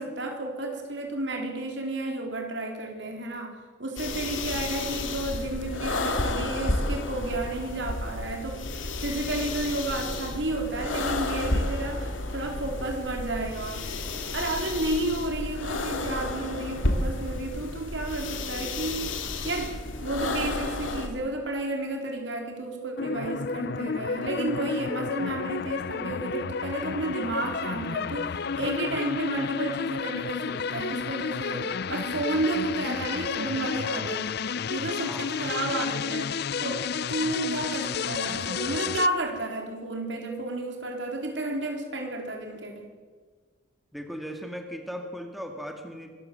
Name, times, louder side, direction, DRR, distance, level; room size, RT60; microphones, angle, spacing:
voice 1, 0.0-3.5 3.8-19.1 19.4-34.3 34.7-36.3 36.6-42.9, right 2 dB, 65° right, 3 dB, 4.0 m, -32 dB
sound 1, 4.0-21.1, left 2 dB, 80° left, 2.6 m, -31 dB
sound 2, 23.0-39.1, left 6 dB, 55° left, 0.5 m, -31 dB
voice 2, 35.0-35.3 43.9-46.1, equal, ahead, 3 dB, 2.0 m, -37 dB
25.0 x 13.5 x 7.8 m, 1.5 s
head